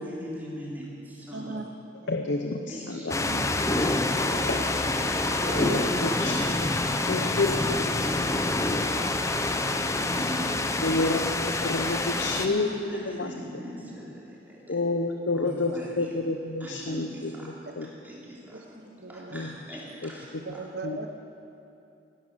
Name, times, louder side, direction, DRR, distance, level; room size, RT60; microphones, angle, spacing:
voice 1, 0.0-1.7 2.7-4.1 4.4-4.5 5.9-6.6 7.0-11.0 12.1-14.7 15.3-16.1 16.6-17.5 18.0-20.6, equal, 10° right, -6 dB, 3.4 m, -40 dB
voice 2, 1.3-1.6 3.2-3.4 4.3-4.5 5.4-6.1 19.0-19.3 20.5-21.1, right 3 dB, 65° right, 6 dB, 0.8 m, -37 dB
voice 3, 2.1-3.1 4.5-4.6 5.4-6.4 7.0-7.6 10.8-13.3 14.7-17.9 19.3-19.8 20.0-20.1 20.8-21.0, left 3 dB, 90° left, 5 dB, 0.8 m, -29 dB
sound 1, 3.1-12.5, left 2 dB, 15° left, 0.7 m, -27 dB
17.0 x 11.0 x 6.8 m, 2.8 s
head